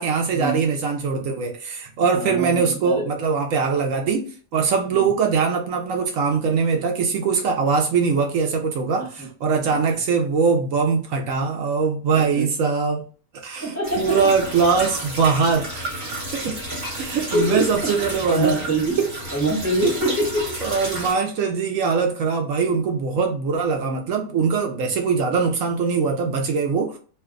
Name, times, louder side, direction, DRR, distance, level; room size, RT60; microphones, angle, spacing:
voice 1, 0.0-13.0 13.4-15.9 16.3-16.6 16.9-18.6 19.0-19.1 20.6-27.0, right 5 dB, 75° right, 2 dB, 0.9 m, -22 dB
voice 2, 2.1-3.1 4.9-5.1 9.2-9.3 12.1-12.5 13.6-14.1 16.4-16.6 17.3-19.0 19.3-20.5, right 2 dB, 15° left, -5 dB, 0.9 m, -24 dB
sound 1, 13.8-21.1, right 1 dB, 45° right, 1.3 m, -32 dB
2.6 x 2.3 x 3.6 m, 0.40 s
omnidirectional pair, 1.5 m